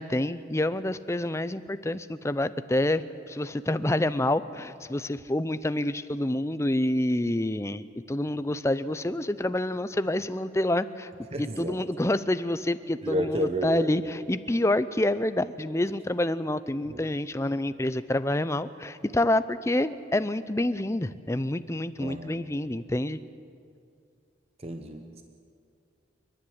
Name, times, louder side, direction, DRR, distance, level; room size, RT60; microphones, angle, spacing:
voice 1, 0.0-11.1 11.4-23.2, left 1 dB, 15° left, 13 dB, 0.5 m, -27 dB
voice 2, 11.3-11.8 13.0-13.9 16.9-17.0 22.0-22.4 24.6-25.2, equal, 30° right, 6 dB, 1.0 m, -31 dB
29.0 x 10.5 x 9.8 m, 2.3 s
head